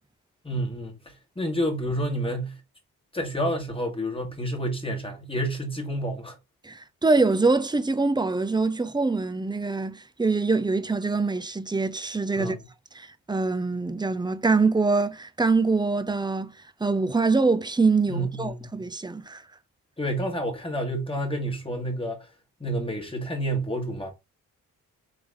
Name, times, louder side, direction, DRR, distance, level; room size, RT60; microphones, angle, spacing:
voice 1, 0.4-2.6 3.1-6.4 12.4-12.7 18.1-18.7 20.0-22.3 22.6-24.1, right 1 dB, 15° left, 1.7 m, -29 dB
voice 2, 6.6-12.6 12.9-16.5 16.8-19.4, right 3 dB, 10° right, 0.7 m, -24 dB
3.9 x 3.4 x 3.5 m
supercardioid pair, 55°, 38 cm